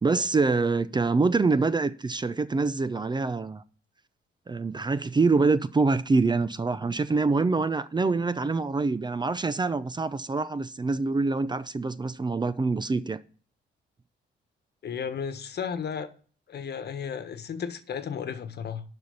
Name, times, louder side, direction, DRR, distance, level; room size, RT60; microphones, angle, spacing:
voice 1, 0.0-3.6 4.5-13.2, right 3 dB, 20° right, 0.6 m, -25 dB
voice 2, 14.8-16.1 16.5-18.8, left 7 dB, 55° left, 1.3 m, -34 dB
11.5 x 4.3 x 6.9 m
cardioid pair, 90°, 20 cm